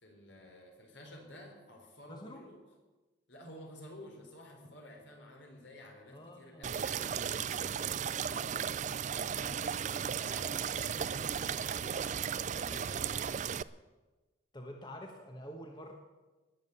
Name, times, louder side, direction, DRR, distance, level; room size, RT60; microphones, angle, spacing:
voice 1, 0.0-2.6 3.3-8.6 9.3-13.0, left 1 dB, 70° left, 1 dB, 4.3 m, -52 dB
voice 2, 2.1-2.4 6.1-6.7 14.5-15.9, equal, 25° left, 2 dB, 1.4 m, -47 dB
sound 1, 6.6-13.6, right 7 dB, 40° right, 0.4 m, -35 dB
19.5 x 7.5 x 8.3 m, 1.2 s
head